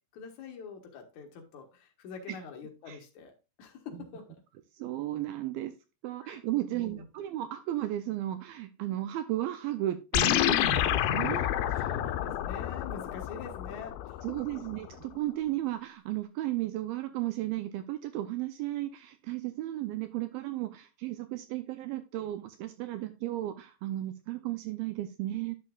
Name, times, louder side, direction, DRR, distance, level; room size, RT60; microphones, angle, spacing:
voice 1, 0.1-3.3 3.6-4.2 6.2-6.4 6.7-7.1 11.8-14.2 14.5-14.6, left 5 dB, 65° left, 4 dB, 2.1 m, -45 dB
voice 2, 4.7-5.7 6.0-11.9 14.2-25.6, right 14 dB, 90° right, 10 dB, 2.1 m, -34 dB
sound 1, 10.1-14.8, left 12 dB, 80° left, 2.4 m, -29 dB
11.5 x 6.5 x 2.4 m, 0.29 s
omnidirectional pair, 4.8 m